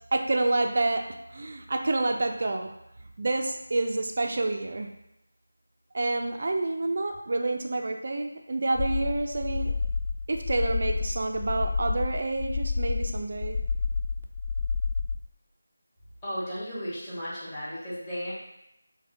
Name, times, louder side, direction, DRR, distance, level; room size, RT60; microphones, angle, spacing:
voice 1, 0.1-1.1 1.3-2.7 3.2-4.9 5.9-9.7 10.3-13.6, right 2 dB, 45° right, 4 dB, 0.3 m, -28 dB
sound 1, 8.8-15.2, left 4 dB, 35° left, 0.4 m, -30 dB
voice 2, 16.2-18.3, equal, 15° left, -10 dB, 1.0 m, -34 dB
3.5 x 2.1 x 3.6 m, 0.85 s
figure-of-eight pair, 165°, 0 cm